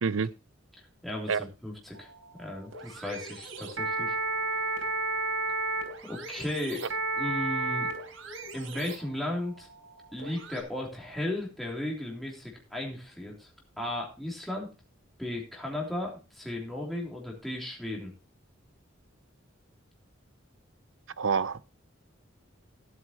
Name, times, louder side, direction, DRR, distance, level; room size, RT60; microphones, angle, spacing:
voice 1, 1.0-2.1 2.4-4.1 6.0-6.8 7.2-7.9 8.5-9.7 10.1-13.5 13.8-14.7 15.2-18.1, left 1 dB, ahead, 3.1 m, -35 dB
sound 1, 2.0-10.6, right 3 dB, 90° right, 3.8 m, -33 dB
voice 2, 21.2-21.6, right 5 dB, 75° right, 0.6 m, -27 dB
17.0 x 8.2 x 2.9 m
head